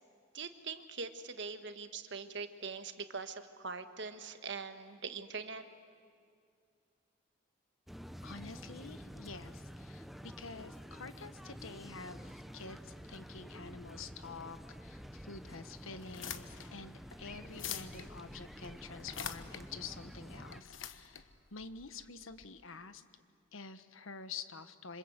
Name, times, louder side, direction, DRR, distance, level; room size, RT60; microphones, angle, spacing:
voice 1, 0.3-5.6, right 5 dB, 60° right, 9 dB, 1.5 m, -42 dB
sound 1, 7.9-20.6, equal, ahead, 0.7 m, -49 dB
voice 2, 8.2-23.0 23.5-25.0, left 4 dB, 90° left, 11 dB, 1.3 m, -48 dB
sound 2, 16.0-22.5, left 9 dB, 70° left, 1.2 m, -46 dB
27.0 x 26.0 x 8.0 m, 2.4 s
head